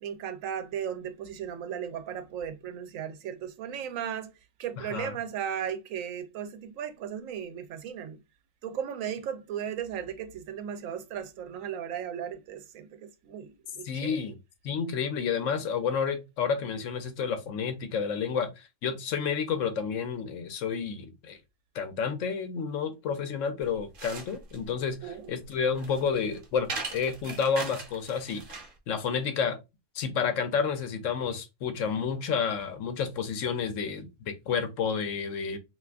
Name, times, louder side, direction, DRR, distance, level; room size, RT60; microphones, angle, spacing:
voice 1, 0.0-4.3 4.6-8.2 8.6-14.2 25.0-25.3, right 8 dB, 90° right, 1.0 m, -36 dB
voice 2, 4.8-5.1 13.8-14.4 14.6-21.4 21.7-28.4 28.9-29.6 29.9-35.6, left 6 dB, 75° left, 1.0 m, -30 dB
sound 1, 23.6-28.8, right 3 dB, 50° right, 0.8 m, -40 dB
2.6 x 2.4 x 3.3 m
omnidirectional pair, 1.3 m